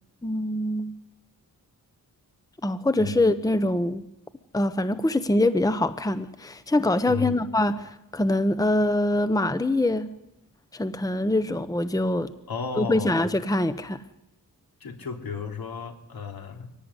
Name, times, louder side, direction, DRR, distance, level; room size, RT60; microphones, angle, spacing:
voice 1, 0.2-0.9 2.6-4.0 4.5-10.1 10.7-12.3 12.8-14.0, left 1 dB, 10° left, 12 dB, 0.9 m, -24 dB
voice 2, 7.1-7.4 11.4-11.6 12.5-13.2 14.8-16.7, left 5 dB, 75° left, 4 dB, 3.4 m, -34 dB
25.0 x 17.5 x 9.9 m, 0.87 s
wide cardioid pair, 150°, 36 cm